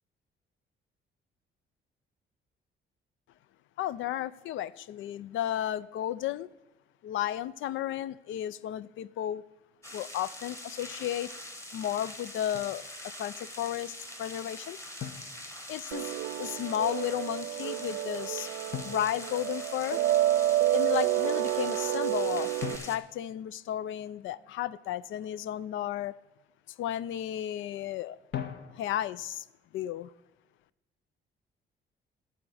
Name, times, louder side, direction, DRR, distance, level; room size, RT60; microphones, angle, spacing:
voice 1, 3.8-6.5 7.0-9.4 9.9-11.3 11.7-12.8 13.2-14.8 15.7-16.1 16.4-18.5 18.8-20.0 20.7-22.5 22.8-26.1 26.8-28.2 28.7-29.4 29.7-30.1, left 12 dB, 75° left, 18 dB, 0.4 m, -33 dB
sound 1, 9.8-23.0, left 1 dB, 15° left, 1.2 m, -44 dB
Drum, 12.5-12.8 15.0-16.1 18.7-20.1 22.6-24.3 28.3-29.3, left 9 dB, 60° left, 0.8 m, -42 dB
sound 2, 15.9-22.8, right 13 dB, 80° right, 0.5 m, -29 dB
11.0 x 7.8 x 4.8 m, 1.0 s
cardioid pair, 90°, 20 cm